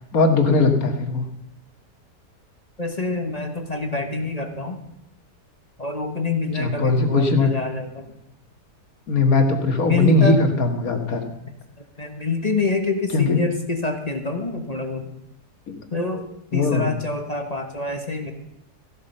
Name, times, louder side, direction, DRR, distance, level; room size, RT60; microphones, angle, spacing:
voice 1, 0.1-1.3 6.6-7.5 9.1-11.2 13.1-13.4 15.7-15.8 16.5-16.9, left 3 dB, 60° left, 5 dB, 2.2 m, -19 dB
voice 2, 2.8-4.8 5.8-8.1 9.9-10.4 12.0-15.1 15.9-18.3, left 3 dB, 25° left, 5 dB, 1.2 m, -26 dB
15.5 x 11.5 x 5.5 m, 0.85 s
omnidirectional pair, 1.7 m